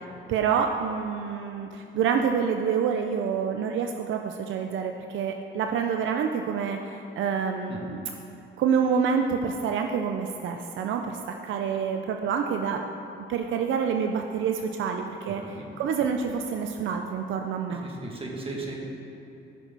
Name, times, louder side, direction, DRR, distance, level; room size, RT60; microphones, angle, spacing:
voice 1, 0.3-8.0 8.6-12.8 13.2-17.9, right 6 dB, 75° right, 4 dB, 0.6 m, -27 dB
voice 2, 15.3-15.7 17.8-18.7, right 2 dB, 30° right, -1 dB, 2.0 m, -36 dB
14.5 x 6.1 x 4.0 m, 2.9 s
cardioid pair, 90°, 20 cm